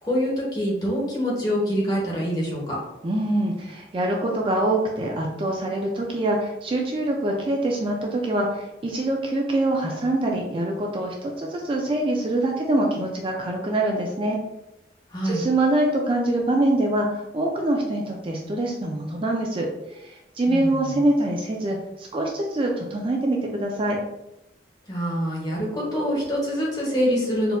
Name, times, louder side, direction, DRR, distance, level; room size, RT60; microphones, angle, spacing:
voice 1, 0.0-2.8 15.1-15.4 20.5-21.0 24.9-27.6, equal, 20° left, -4 dB, 1.0 m, -25 dB
voice 2, 3.0-14.4 15.2-19.7 19.9-24.0, right 1 dB, 30° right, 0 dB, 0.3 m, -24 dB
4.2 x 2.5 x 2.2 m, 0.90 s
head